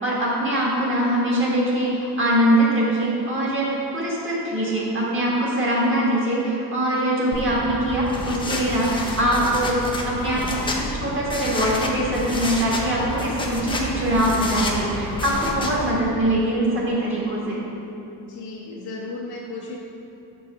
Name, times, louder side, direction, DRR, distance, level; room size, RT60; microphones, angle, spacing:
voice 1, 0.0-17.6, right 1 dB, 30° right, -5 dB, 1.5 m, -22 dB
sound 1, 7.3-15.9, left 1 dB, 15° left, 0.4 m, -29 dB
voice 2, 18.2-19.8, left 3 dB, 70° left, -3 dB, 0.8 m, -34 dB
6.1 x 3.9 x 5.7 m, 2.9 s
cardioid pair, 160°, 40 cm